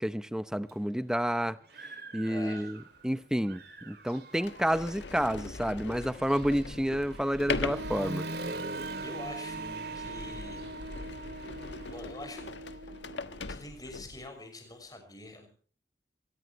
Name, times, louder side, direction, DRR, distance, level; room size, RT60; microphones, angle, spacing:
voice 1, 0.0-8.3, equal, 5° right, 0.7 m, -30 dB
Human voice / Motorcycle, 0.7-0.8 1.3-3.1 3.4-12.0, right 2 dB, 55° right, 2.6 m, -44 dB
voice 2, 2.3-2.7 9.0-9.6 9.9-10.7 11.9-12.8 13.5-15.5, left 2 dB, 20° left, 6.2 m, -45 dB
Sliding door, 3.0-3.1 3.8-3.9 4.3-14.3, left 3 dB, 75° left, 1.4 m, -40 dB
Wind instrument woodwind instrument, 7.7-13.4, right 2 dB, 90° right, 1.8 m, -42 dB
23.0 x 19.5 x 3.1 m
head